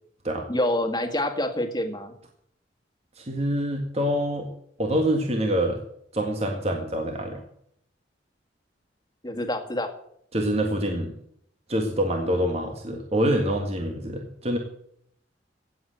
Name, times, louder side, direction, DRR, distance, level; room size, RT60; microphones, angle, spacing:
voice 1, 0.5-2.1 9.2-9.9, left 1 dB, 20° left, 5 dB, 2.0 m, -27 dB
voice 2, 3.2-4.5 4.8-5.8 6.1-7.4 10.3-11.1 11.7-14.6, equal, 35° right, 3 dB, 1.8 m, -26 dB
17.0 x 7.9 x 7.8 m, 0.70 s
head